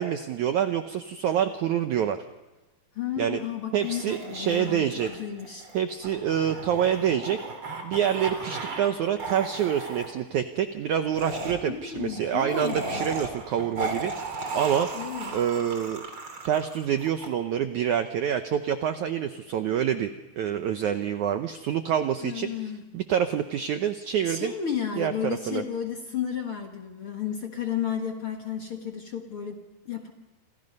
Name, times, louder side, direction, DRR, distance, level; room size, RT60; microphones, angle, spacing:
voice 1, 0.0-2.2 3.2-3.4 3.7-5.1 5.7-7.4 7.8-14.9 15.3-16.0 16.4-20.1 20.4-22.5 22.9-24.5 25.0-25.6, right 9 dB, 80° right, 8 dB, 1.7 m, -27 dB
voice 2, 2.9-5.7 11.7-13.1 14.9-15.4 22.2-22.8 24.2-30.1, left 8 dB, 50° left, 3 dB, 1.7 m, -33 dB
sound 1, 3.8-8.9 9.2-10.1 11.1-17.3, right 3 dB, 35° right, 3.4 m, -36 dB
28.0 x 27.0 x 5.4 m, 1.1 s
omnidirectional pair, 4.6 m